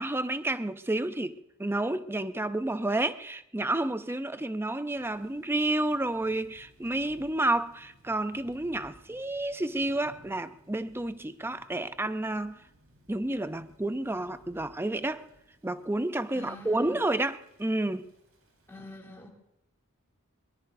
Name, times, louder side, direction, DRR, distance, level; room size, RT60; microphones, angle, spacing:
voice 1, 0.0-12.6 13.1-15.3 15.6-18.1, right 1 dB, 10° right, 0.6 m, -30 dB
Thunder / Rain, 4.9-18.8, equal, 75° right, 4.5 m, -60 dB
voice 2, 16.3-17.0 18.7-19.3, left 2 dB, 10° left, 2.5 m, -46 dB
22.5 x 22.0 x 2.7 m
head